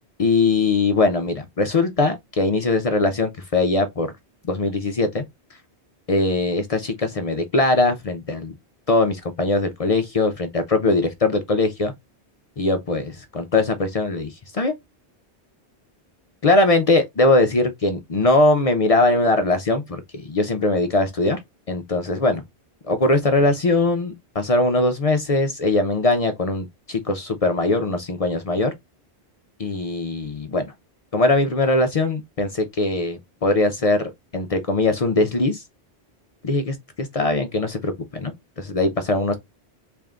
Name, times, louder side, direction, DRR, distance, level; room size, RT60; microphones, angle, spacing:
voice 1, 0.2-4.1 4.5-5.2 6.1-8.5 8.9-11.9 12.6-14.7 16.4-21.4 21.7-22.4 22.9-28.7 29.6-30.7 31.1-35.6 36.4-39.4, left 2 dB, 50° left, 0.4 m, -21 dB
3.4 x 2.5 x 3.5 m
omnidirectional pair, 1.1 m